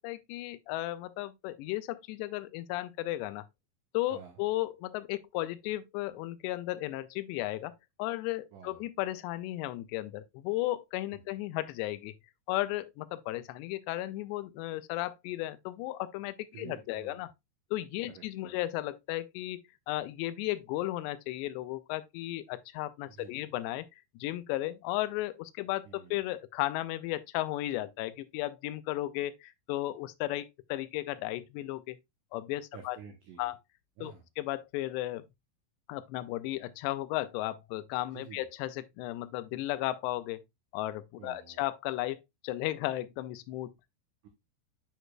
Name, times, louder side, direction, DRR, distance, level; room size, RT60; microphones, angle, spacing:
voice 1, 0.0-3.4 3.9-7.7 8.0-12.1 12.5-17.3 17.7-19.6 19.9-23.9 24.2-32.0 32.3-33.0 33.4-33.6 34.0-35.2 35.9-40.4 40.7-43.7, left 16 dB, 85° left, 2.7 m, -35 dB
voice 2, 8.5-8.8 11.1-11.2 16.5-17.2 18.1-18.6 23.1-23.5 25.9-26.2 32.7-33.5 34.0-34.2 38.1-38.5 41.2-41.6 44.2-44.3, right 7 dB, 80° right, 1.8 m, -50 dB
9.1 x 4.8 x 2.2 m
omnidirectional pair, 5.0 m